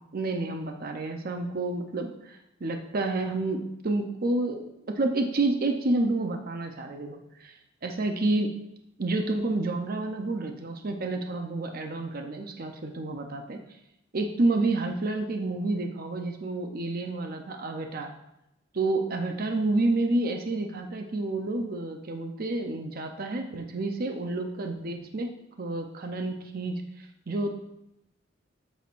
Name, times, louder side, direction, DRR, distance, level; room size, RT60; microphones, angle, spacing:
voice 1, 0.1-7.5 7.8-8.5 9.0-13.6 14.1-18.1 18.7-25.3 25.6-27.5, right 2 dB, 50° right, 4 dB, 0.7 m, -29 dB
8.2 x 6.4 x 2.6 m, 0.84 s
head